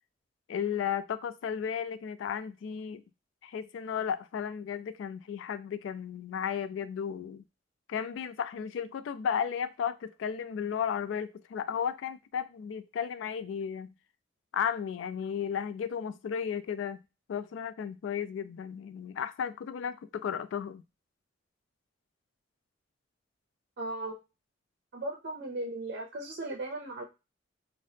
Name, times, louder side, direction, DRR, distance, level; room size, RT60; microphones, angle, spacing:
voice 1, 0.5-3.0 3.4-7.4 7.9-13.9 14.5-17.0 17.3-20.8, left 7 dB, 80° left, 0.3 m, -34 dB
voice 2, 23.8-24.1 24.9-27.0, right 2 dB, 55° right, 0.5 m, -37 dB
2.7 x 2.1 x 3.2 m
head